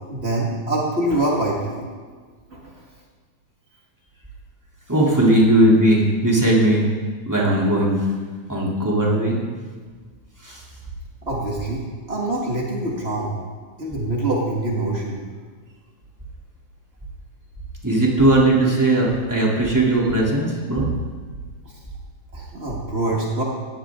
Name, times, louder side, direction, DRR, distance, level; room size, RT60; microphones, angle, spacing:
voice 1, 0.0-1.9 2.5-2.7 11.2-11.8 12.1-13.3 13.8-15.2 22.3-23.4, right 1 dB, 65° right, -3 dB, 0.6 m, -24 dB
voice 2, 4.9-6.9 7.2-8.0 8.5-9.4 10.4-10.6 17.8-20.9, right 1 dB, 5° right, -4 dB, 2.4 m, -18 dB
17.5 x 17.0 x 3.8 m, 1.5 s
omnidirectional pair, 4.5 m